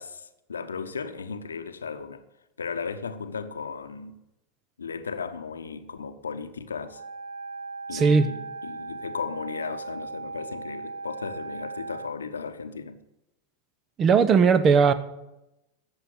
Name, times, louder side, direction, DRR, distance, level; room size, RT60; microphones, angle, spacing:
voice 1, 0.0-2.2 2.6-4.2 4.8-7.0 7.9-13.0, left 5 dB, 70° left, 1.0 m, -35 dB
Wind instrument woodwind instrument, 6.8-12.1, right 3 dB, 70° right, 0.6 m, -38 dB
voice 2, 7.9-8.3 14.0-14.9, right 5 dB, 25° right, 0.8 m, -18 dB
13.5 x 8.0 x 8.7 m
figure-of-eight pair, 90°, 0 cm